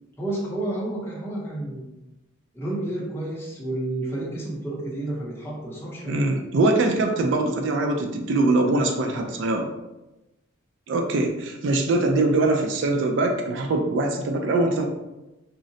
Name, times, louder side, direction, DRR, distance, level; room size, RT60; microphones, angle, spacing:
voice 1, 0.2-1.9 2.5-6.2 9.2-9.5, right 1 dB, 10° left, -5 dB, 0.6 m, -31 dB
voice 2, 6.1-9.7 10.9-14.9, right 2 dB, 60° right, 3 dB, 0.3 m, -22 dB
3.7 x 2.1 x 2.6 m, 0.99 s
head